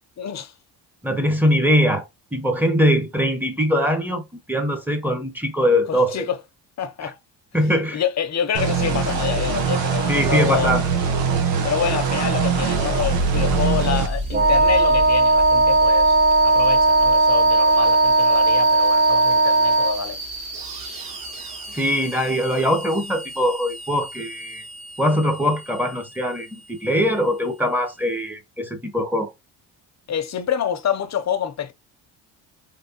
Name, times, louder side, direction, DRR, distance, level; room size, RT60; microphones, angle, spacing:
voice 1, 0.2-0.5 5.9-6.4 6.8-7.2 7.9-10.8 11.6-16.2 16.4-20.2 30.1-31.7, left 8 dB, 40° left, 0.7 m, -27 dB
voice 2, 1.0-2.0 2.3-6.2 7.0-7.1 7.5-8.0 10.1-10.9 21.7-24.6 25.0-29.3, equal, 5° right, 0.9 m, -22 dB
sound 1, 8.5-14.1, right 6 dB, 85° right, 1.0 m, -22 dB
sound 2, 11.8-28.1, equal, 70° right, 1.9 m, -33 dB
Wind instrument woodwind instrument, 14.3-20.1, right 2 dB, 25° right, 0.7 m, -17 dB
3.4 x 3.3 x 2.8 m
cardioid pair, 80°, 42 cm